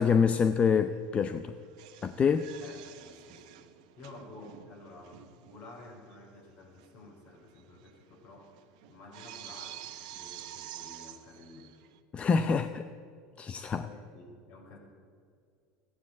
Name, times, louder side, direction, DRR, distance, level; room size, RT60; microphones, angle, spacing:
voice 1, 0.0-1.5 2.0-2.5 12.1-12.8 13.4-13.9, left 6 dB, 30° left, 10 dB, 0.6 m, -26 dB
sound 1, 0.7-1.0 1.3-5.9 6.1-6.2 6.8-6.9 7.2-12.0, right 12 dB, 75° right, 1.1 m, -49 dB
voice 2, 2.5-3.7 4.0-8.6 8.9-11.7 13.8-14.8, left 2 dB, 55° left, 1 dB, 4.5 m, -51 dB
14.5 x 9.7 x 8.1 m, 2.2 s
hypercardioid pair, 95°, 4 cm